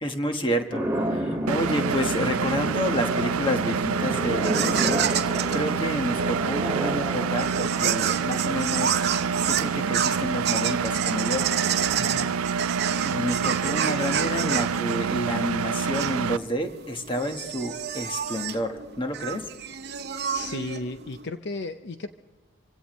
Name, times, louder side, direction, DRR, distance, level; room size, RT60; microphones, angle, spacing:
voice 1, 0.0-5.0 5.5-9.0 9.5-11.5 12.7-19.5, equal, 25° left, 5 dB, 1.3 m, -30 dB
sound 1, 0.7-11.1, right 1 dB, 10° right, 2.4 m, -32 dB
Engine, 1.5-16.4, right 6 dB, 80° right, 0.4 m, -27 dB
sound 2, 4.4-21.2, right 8 dB, 50° right, 0.9 m, -30 dB
voice 2, 12.0-12.3 20.2-22.1, left 2 dB, 55° left, 8 dB, 0.6 m, -34 dB
26.5 x 16.5 x 3.1 m, 1.3 s
head